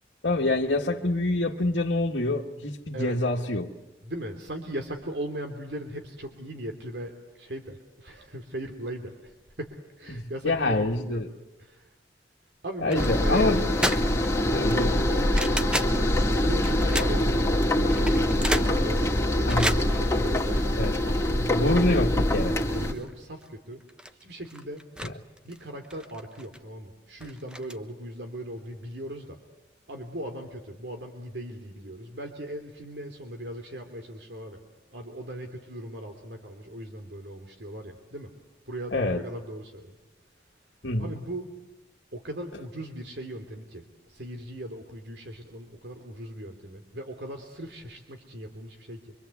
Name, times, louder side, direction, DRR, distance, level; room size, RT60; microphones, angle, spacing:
voice 1, 0.2-3.7 10.1-11.3 12.8-13.7 14.5-15.0 19.5-19.8 20.8-21.0 21.5-22.6 38.9-39.2 40.8-41.2, left 2 dB, 75° left, -1 dB, 1.7 m, -26 dB
voice 2, 4.0-11.2 11.6-11.9 12.6-13.8 14.9-15.2 16.4-20.6 21.0-21.7 22.7-23.8 24.2-24.9 25.4-29.4 29.9-34.6 34.9-38.3 38.7-40.0 41.0-41.5 42.1-49.1, right 1 dB, 70° right, 4 dB, 2.8 m, -38 dB
sound 1, 12.9-22.9, left 1 dB, 15° left, 2.5 m, -24 dB
sound 2, 12.9-13.1 13.5-14.3 14.7-16.0 16.6-17.4 17.9-21.3 21.7-21.8 22.2-22.3 22.7-23.1 23.4-23.5 23.8-25.1 25.4-26.6 27.2-27.8, equal, 5° right, 1.0 m, -32 dB
25.5 x 24.5 x 8.3 m, 1.0 s
head